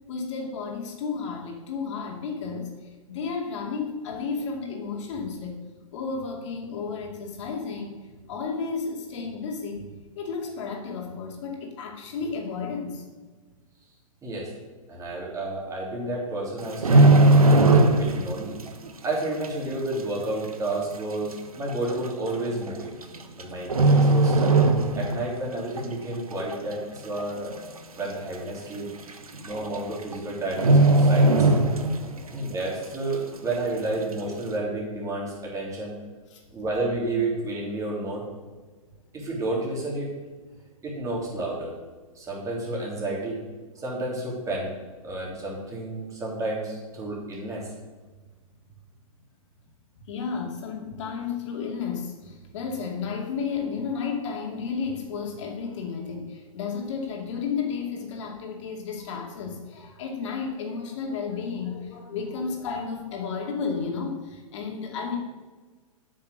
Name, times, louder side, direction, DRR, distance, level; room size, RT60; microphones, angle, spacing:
voice 1, 0.1-5.6 5.9-8.0 8.3-13.0 27.1-27.2 29.3-29.5 32.2-32.5 36.3-36.4 40.5-40.6 50.1-65.2, left 5 dB, 55° left, 1 dB, 2.5 m, -32 dB
voice 2, 14.9-18.6 19.0-22.9 23.4-24.5 25.0-27.6 27.9-28.9 29.4-31.5 32.3-35.9 36.5-38.2 39.1-40.1 40.8-41.7 42.1-43.4 43.8-44.7 45.0-47.7, right 2 dB, 20° right, -3 dB, 3.4 m, -31 dB
sound 1, 16.6-18.3 18.6-18.9 19.4-19.5 20.4-20.5 20.7-20.8 21.7-21.9 23.0-23.4 23.7-25.3 25.6-25.8 26.3-26.8 27.2-27.3 27.5-27.6 28.0-28.1 29.1-29.2 29.4-29.7 30.0-30.1 30.5-32.2 32.5-32.6, right 2 dB, 90° right, 1.0 m, -18 dB
8.4 x 6.4 x 6.4 m, 1.3 s
hypercardioid pair, 115°, 18 cm